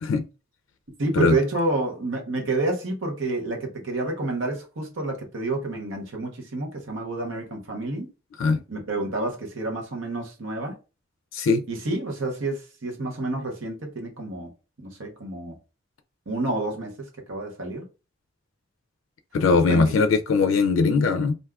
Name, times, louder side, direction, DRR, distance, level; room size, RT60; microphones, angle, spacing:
voice 1, 1.0-8.1 8.7-10.8 11.7-14.5 14.8-15.6 16.3-17.8 19.7-20.0, right 2 dB, 85° right, 0.9 m, -29 dB
voice 2, 11.3-11.6 19.3-21.3, left 4 dB, 85° left, 0.4 m, -20 dB
2.6 x 2.3 x 3.4 m
head